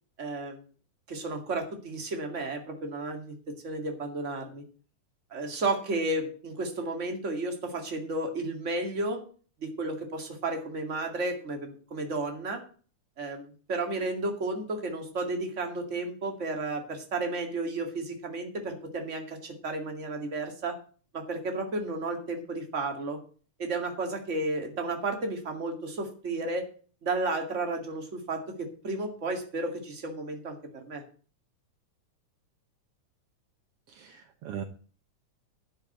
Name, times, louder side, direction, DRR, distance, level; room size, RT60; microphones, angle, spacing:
voice 1, 0.2-0.6 1.1-3.3 3.6-4.6 5.3-9.2 9.6-12.6 13.2-20.8 21.1-23.2 23.6-26.7 27.0-31.0, right 2 dB, 25° right, 4 dB, 1.9 m, -33 dB
voice 2, 33.9-34.6, right 8 dB, 70° right, 7 dB, 1.4 m, -39 dB
11.0 x 6.4 x 7.9 m, 0.41 s
omnidirectional pair, 3.6 m